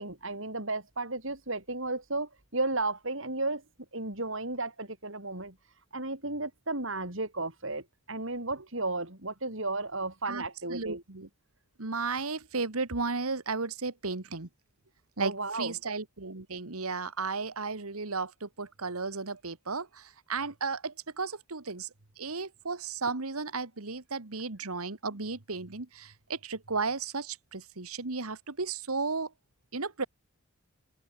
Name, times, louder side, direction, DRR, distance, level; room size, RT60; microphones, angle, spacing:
voice 1, 0.0-3.6 3.9-5.6 5.9-11.0 15.2-15.7, right 2 dB, 60° right, 5.8 m, -34 dB
voice 2, 10.3-11.3 11.8-14.5 15.2-21.9 22.2-29.3 29.7-30.0, right 4 dB, 80° right, 1.7 m, -34 dB
head